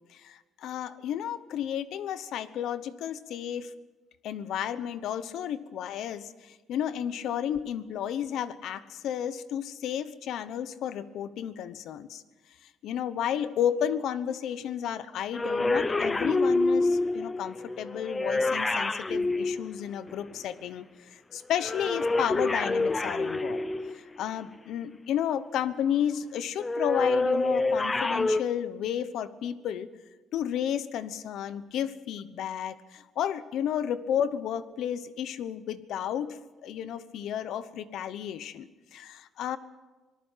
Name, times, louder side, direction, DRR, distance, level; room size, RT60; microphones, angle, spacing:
voice 1, 0.0-3.7 4.2-12.2 12.8-23.7 23.9-29.9 30.3-39.6, left 9 dB, 75° left, 14 dB, 1.0 m, -32 dB
sound 1, 15.3-20.4 21.6-24.2 26.6-28.4, left 2 dB, 15° left, 0.7 m, -27 dB
26.0 x 19.0 x 5.7 m, 1.2 s
cardioid pair, 145°, 0 cm